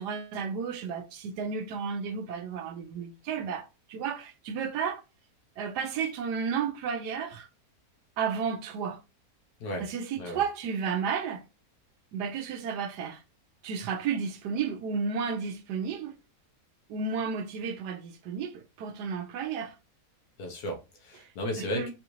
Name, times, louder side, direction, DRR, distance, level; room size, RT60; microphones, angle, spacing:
voice 1, 0.0-5.0 5.6-7.5 8.2-9.0 9.8-11.4 12.1-13.2 13.6-16.2 16.9-19.7 21.6-21.9, right 6 dB, 90° right, 1.2 m, -32 dB
voice 2, 20.4-21.9, left 1 dB, 70° left, 1.4 m, -34 dB
4.0 x 2.5 x 3.0 m
omnidirectional pair, 1.7 m